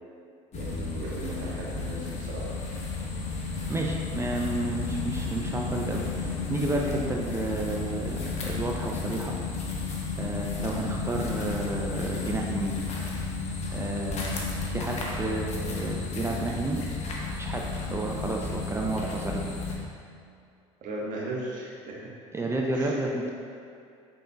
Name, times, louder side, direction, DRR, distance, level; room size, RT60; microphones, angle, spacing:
sound 1, 0.5-19.8, left 4 dB, 45° left, 0.8 m, -33 dB
voice 1, 0.5-2.5 20.8-22.1 22.7-23.0, right 1 dB, 60° right, -4 dB, 1.1 m, -37 dB
voice 2, 3.7-9.3 10.2-12.8 13.7-16.8 17.4-17.6 17.9-19.5 22.3-23.3, right 2 dB, 15° right, -1 dB, 0.4 m, -31 dB
5.2 x 3.7 x 2.3 m, 2.5 s
hypercardioid pair, 75°, 16 cm